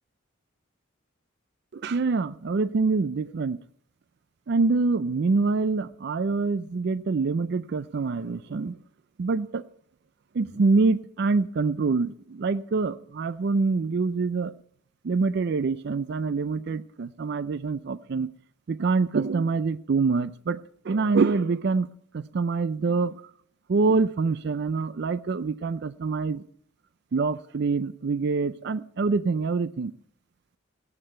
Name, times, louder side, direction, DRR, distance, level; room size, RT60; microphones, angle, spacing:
voice 1, 1.7-3.6 4.5-8.8 9.2-9.6 10.3-14.5 15.0-18.3 18.7-20.6 20.8-21.9 22.1-23.2 23.7-26.4 27.1-29.9, right 4 dB, 55° right, 16 dB, 0.4 m, -25 dB
16.5 x 8.8 x 4.4 m, 0.63 s
head